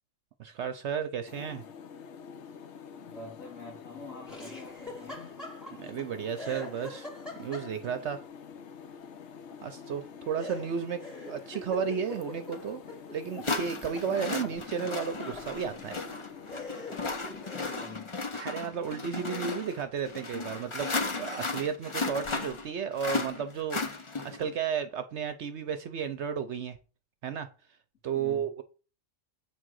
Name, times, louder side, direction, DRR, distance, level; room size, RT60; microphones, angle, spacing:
voice 1, 0.4-1.6 5.8-7.1 7.4-8.2 9.6-12.8 13.1-16.0 18.3-20.9 21.2-26.8 27.2-27.5 28.0-28.6, right 7 dB, 65° right, 0.9 m, -33 dB
sound 1, 1.3-17.9, left 6 dB, 65° left, 1.0 m, -47 dB
voice 2, 3.0-5.4 14.3-14.6 17.5-18.2 28.1-28.5, left 3 dB, 85° left, 2.9 m, -46 dB
Laughter, 4.3-6.0 6.4-8.0 10.4-13.5 13.8-15.5 16.1-16.2 16.5-17.8, left 2 dB, ahead, 2.3 m, -44 dB
sound 2, 12.5-12.6 13.4-24.5, left 3 dB, 30° left, 0.6 m, -35 dB
7.8 x 3.7 x 6.2 m
omnidirectional pair, 1.4 m